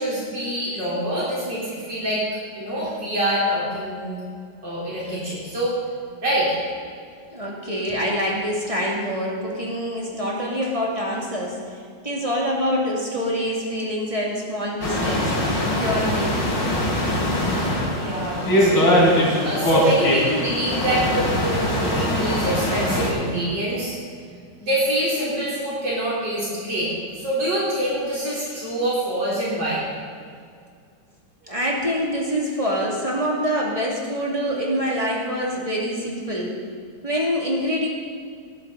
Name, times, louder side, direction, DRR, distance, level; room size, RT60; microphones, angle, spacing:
voice 1, 0.0-2.2 2.5-4.1 4.6-5.7 6.2-6.6 17.9-19.0 19.4-23.9 24.6-29.9, right 1 dB, 70° right, -8 dB, 4.8 m, -25 dB
voice 2, 7.3-16.5 31.4-36.6 37.0-37.9, equal, 20° right, -4 dB, 2.6 m, -25 dB
sound 1, 14.8-23.1, equal, 80° left, 4.0 m, -21 dB
19.0 x 12.0 x 4.1 m, 2.2 s
omnidirectional pair, 2.0 m